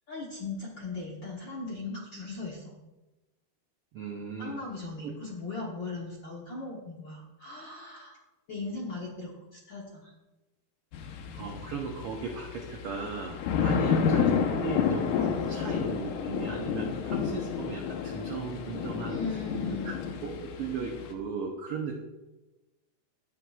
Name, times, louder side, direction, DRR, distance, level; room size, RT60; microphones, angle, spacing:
voice 1, 0.1-2.7 4.4-8.2 8.5-10.1 13.6-14.1 19.1-20.0, left 3 dB, 60° left, -3 dB, 1.2 m, -38 dB
voice 2, 3.9-4.5 5.0-5.1 11.3-19.2 19.8-19.9 20.2-22.0, right 5 dB, 80° right, 2 dB, 1.3 m, -37 dB
sound 1, 10.9-21.1, left 6 dB, 90° left, 2.4 m, -30 dB
15.5 x 7.6 x 2.4 m, 1.1 s
omnidirectional pair, 3.6 m